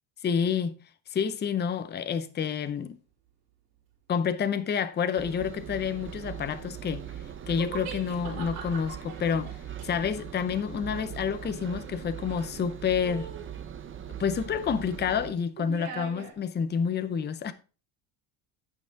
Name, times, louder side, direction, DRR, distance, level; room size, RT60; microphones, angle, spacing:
voice 1, 0.2-0.8 1.1-3.0 4.1-7.1 7.5-13.3 14.2-17.5, left 7 dB, 25° left, 0.6 m, -29 dB
Engine, 5.2-15.3, right 9 dB, 25° right, 0.8 m, -40 dB
sound 1, 7.5-12.6 13.0-13.5 15.6-16.3, right 7 dB, 85° right, 3.3 m, -42 dB
9.1 x 5.6 x 4.5 m
cardioid pair, 130°, 45 cm